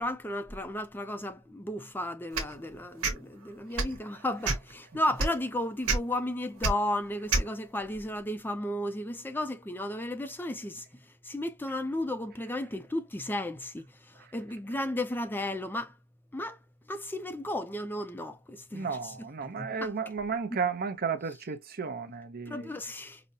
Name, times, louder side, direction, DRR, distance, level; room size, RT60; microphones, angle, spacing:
voice 1, 0.0-10.9 11.2-15.9 16.3-16.6 16.9-19.3 19.6-19.9 22.5-23.2, left 1 dB, 10° left, 0.4 m, -34 dB
sound 1, 2.3-2.5 3.0-3.2 3.7-4.0 4.4-4.7 5.2-5.3 5.8-6.0 6.6-6.7 7.3-7.5, right 3 dB, 80° right, 1.3 m, -26 dB
voice 2, 18.7-22.7, right 5 dB, 45° right, 0.7 m, -33 dB
5.1 x 2.1 x 2.7 m
head